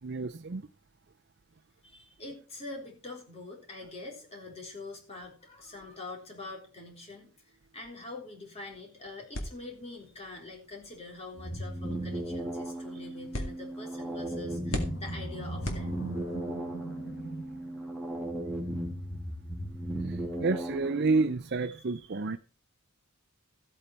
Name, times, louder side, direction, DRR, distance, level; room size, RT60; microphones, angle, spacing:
voice 1, 0.0-0.6 16.3-16.5 20.0-22.4, right 3 dB, 50° right, 0.6 m, -30 dB
voice 2, 1.8-15.9, left 2 dB, 30° left, 3.8 m, -44 dB
sound 1, 9.3-16.5, left 1 dB, 60° left, 2.2 m, -41 dB
sound 2, 11.4-21.3, right 1 dB, ahead, 1.8 m, -36 dB
Animal, 13.9-18.4, right 3 dB, 85° left, 6.6 m, -43 dB
14.5 x 8.7 x 4.5 m
head